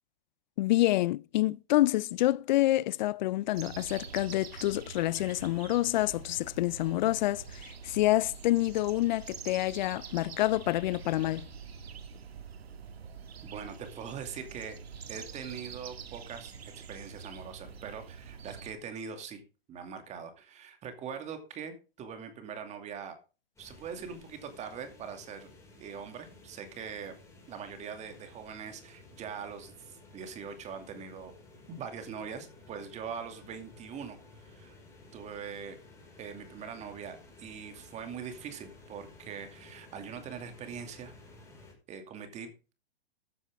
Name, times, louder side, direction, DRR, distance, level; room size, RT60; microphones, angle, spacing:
voice 1, 0.6-11.5, left 16 dB, 50° left, 0.5 m, -27 dB
sound 1, 3.5-18.7, right 6 dB, 85° right, 2.1 m, -46 dB
voice 2, 13.4-14.8 15.1-19.4 19.7-23.2 23.6-25.5 25.8-27.1 27.5-31.3 31.7-34.7 35.1-35.8 36.2-41.1 41.9-42.7, right 6 dB, 20° right, 2.5 m, -42 dB
sound 2, 23.6-41.7, left 2 dB, 10° left, 5.3 m, -55 dB
14.0 x 9.6 x 3.6 m
hypercardioid pair, 135°, 30 cm